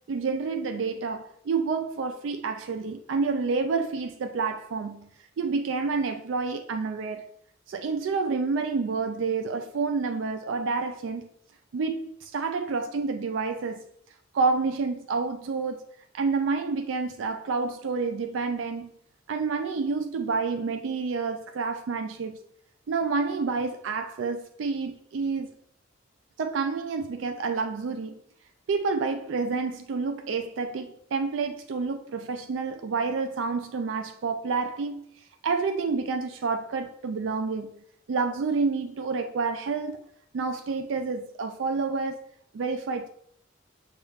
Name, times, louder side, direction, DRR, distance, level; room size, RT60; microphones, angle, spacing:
voice 1, 0.0-5.1 5.4-7.2 7.7-11.3 11.7-13.8 14.3-15.8 16.1-18.9 19.3-22.4 22.9-25.5 26.4-28.2 28.7-35.0 35.4-37.7 38.1-40.0 40.3-42.3 42.5-43.1, right 4 dB, 70° right, 0.4 m, -29 dB
6.4 x 2.4 x 3.1 m
head